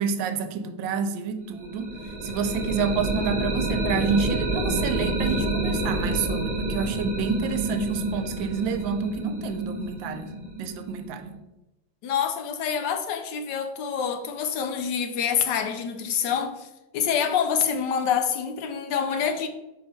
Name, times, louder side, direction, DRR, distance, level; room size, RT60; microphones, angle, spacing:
voice 1, 0.0-1.9 2.2-11.4, right 6 dB, 85° right, 1.4 m, -29 dB
sound 1, 1.6-11.4, right 2 dB, 25° right, 1.6 m, -28 dB
voice 2, 12.0-16.7 16.9-19.5, left 7 dB, 75° left, 1.2 m, -26 dB
5.5 x 4.5 x 4.3 m
omnidirectional pair, 2.1 m